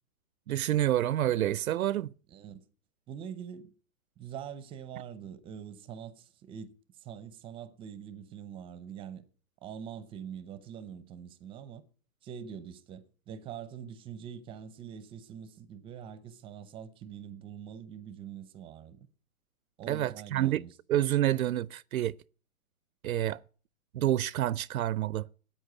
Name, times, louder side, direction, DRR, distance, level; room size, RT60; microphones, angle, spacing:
voice 1, 0.5-2.1 19.9-20.6 20.9-22.2 23.0-23.4 23.9-25.3, right 13 dB, 80° right, 0.6 m, -28 dB
voice 2, 2.3-2.7 3.1-3.7 4.2-6.7 7.0-9.2 9.6-11.8 12.2-19.1 19.8-20.7, right 8 dB, 15° right, 0.7 m, -44 dB
13.5 x 8.9 x 9.0 m
hypercardioid pair, 150°, 42 cm